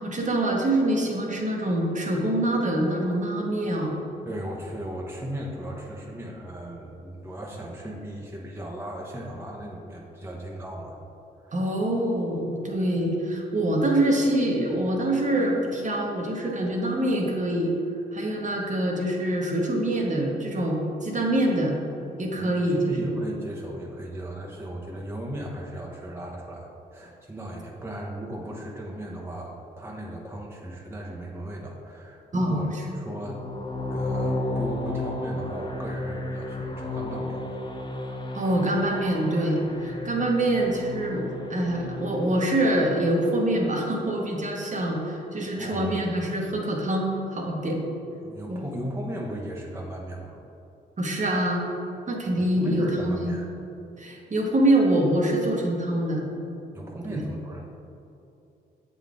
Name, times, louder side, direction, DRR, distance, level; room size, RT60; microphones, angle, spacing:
voice 1, 0.0-3.9 11.5-17.7 18.1-21.8 22.2-23.2 32.3-32.6 38.3-47.8 48.5-48.6 51.0-51.7 52.1-53.4 54.0-56.3 57.1-57.2, right 1 dB, 35° right, 0 dB, 1.1 m, -25 dB
voice 2, 4.3-11.0 11.4-11.6 22.4-33.4 33.8-37.4 45.6-46.0 48.2-50.4 52.4-53.5 56.7-57.6, right 1 dB, 10° right, -3 dB, 0.9 m, -36 dB
sound 1, 33.1-43.2, left 2 dB, 25° left, 0.7 m, -33 dB
7.2 x 3.9 x 3.6 m, 2.8 s
hypercardioid pair, 50°, 21 cm